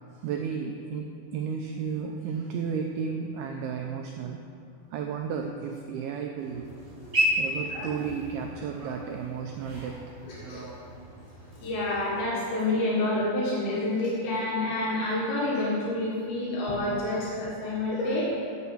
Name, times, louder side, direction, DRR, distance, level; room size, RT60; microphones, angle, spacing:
voice 1, 0.2-4.6 4.9-6.7 7.4-10.0, right 6 dB, 85° right, 3 dB, 2.2 m, -33 dB
sound 1, 6.4-12.2, equal, 30° right, 2.9 m, -33 dB
voice 2, 10.3-10.6 11.5-18.2, left 2 dB, 80° left, -6 dB, 4.0 m, -28 dB
9.3 x 6.9 x 7.1 m, 2.5 s
omnidirectional pair, 5.1 m